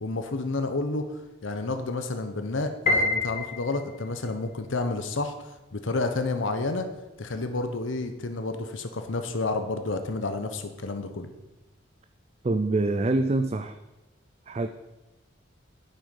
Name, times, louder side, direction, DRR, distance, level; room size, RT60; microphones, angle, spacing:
voice 1, 0.0-6.9 7.2-11.3, left 3 dB, 85° left, 7 dB, 0.9 m, -30 dB
Piano, 2.9-4.2, left 2 dB, 40° left, 1.6 m, -26 dB
voice 2, 12.4-13.8 14.5-14.7, right 2 dB, 35° right, 10 dB, 0.4 m, -25 dB
9.4 x 8.9 x 5.3 m, 1.0 s
head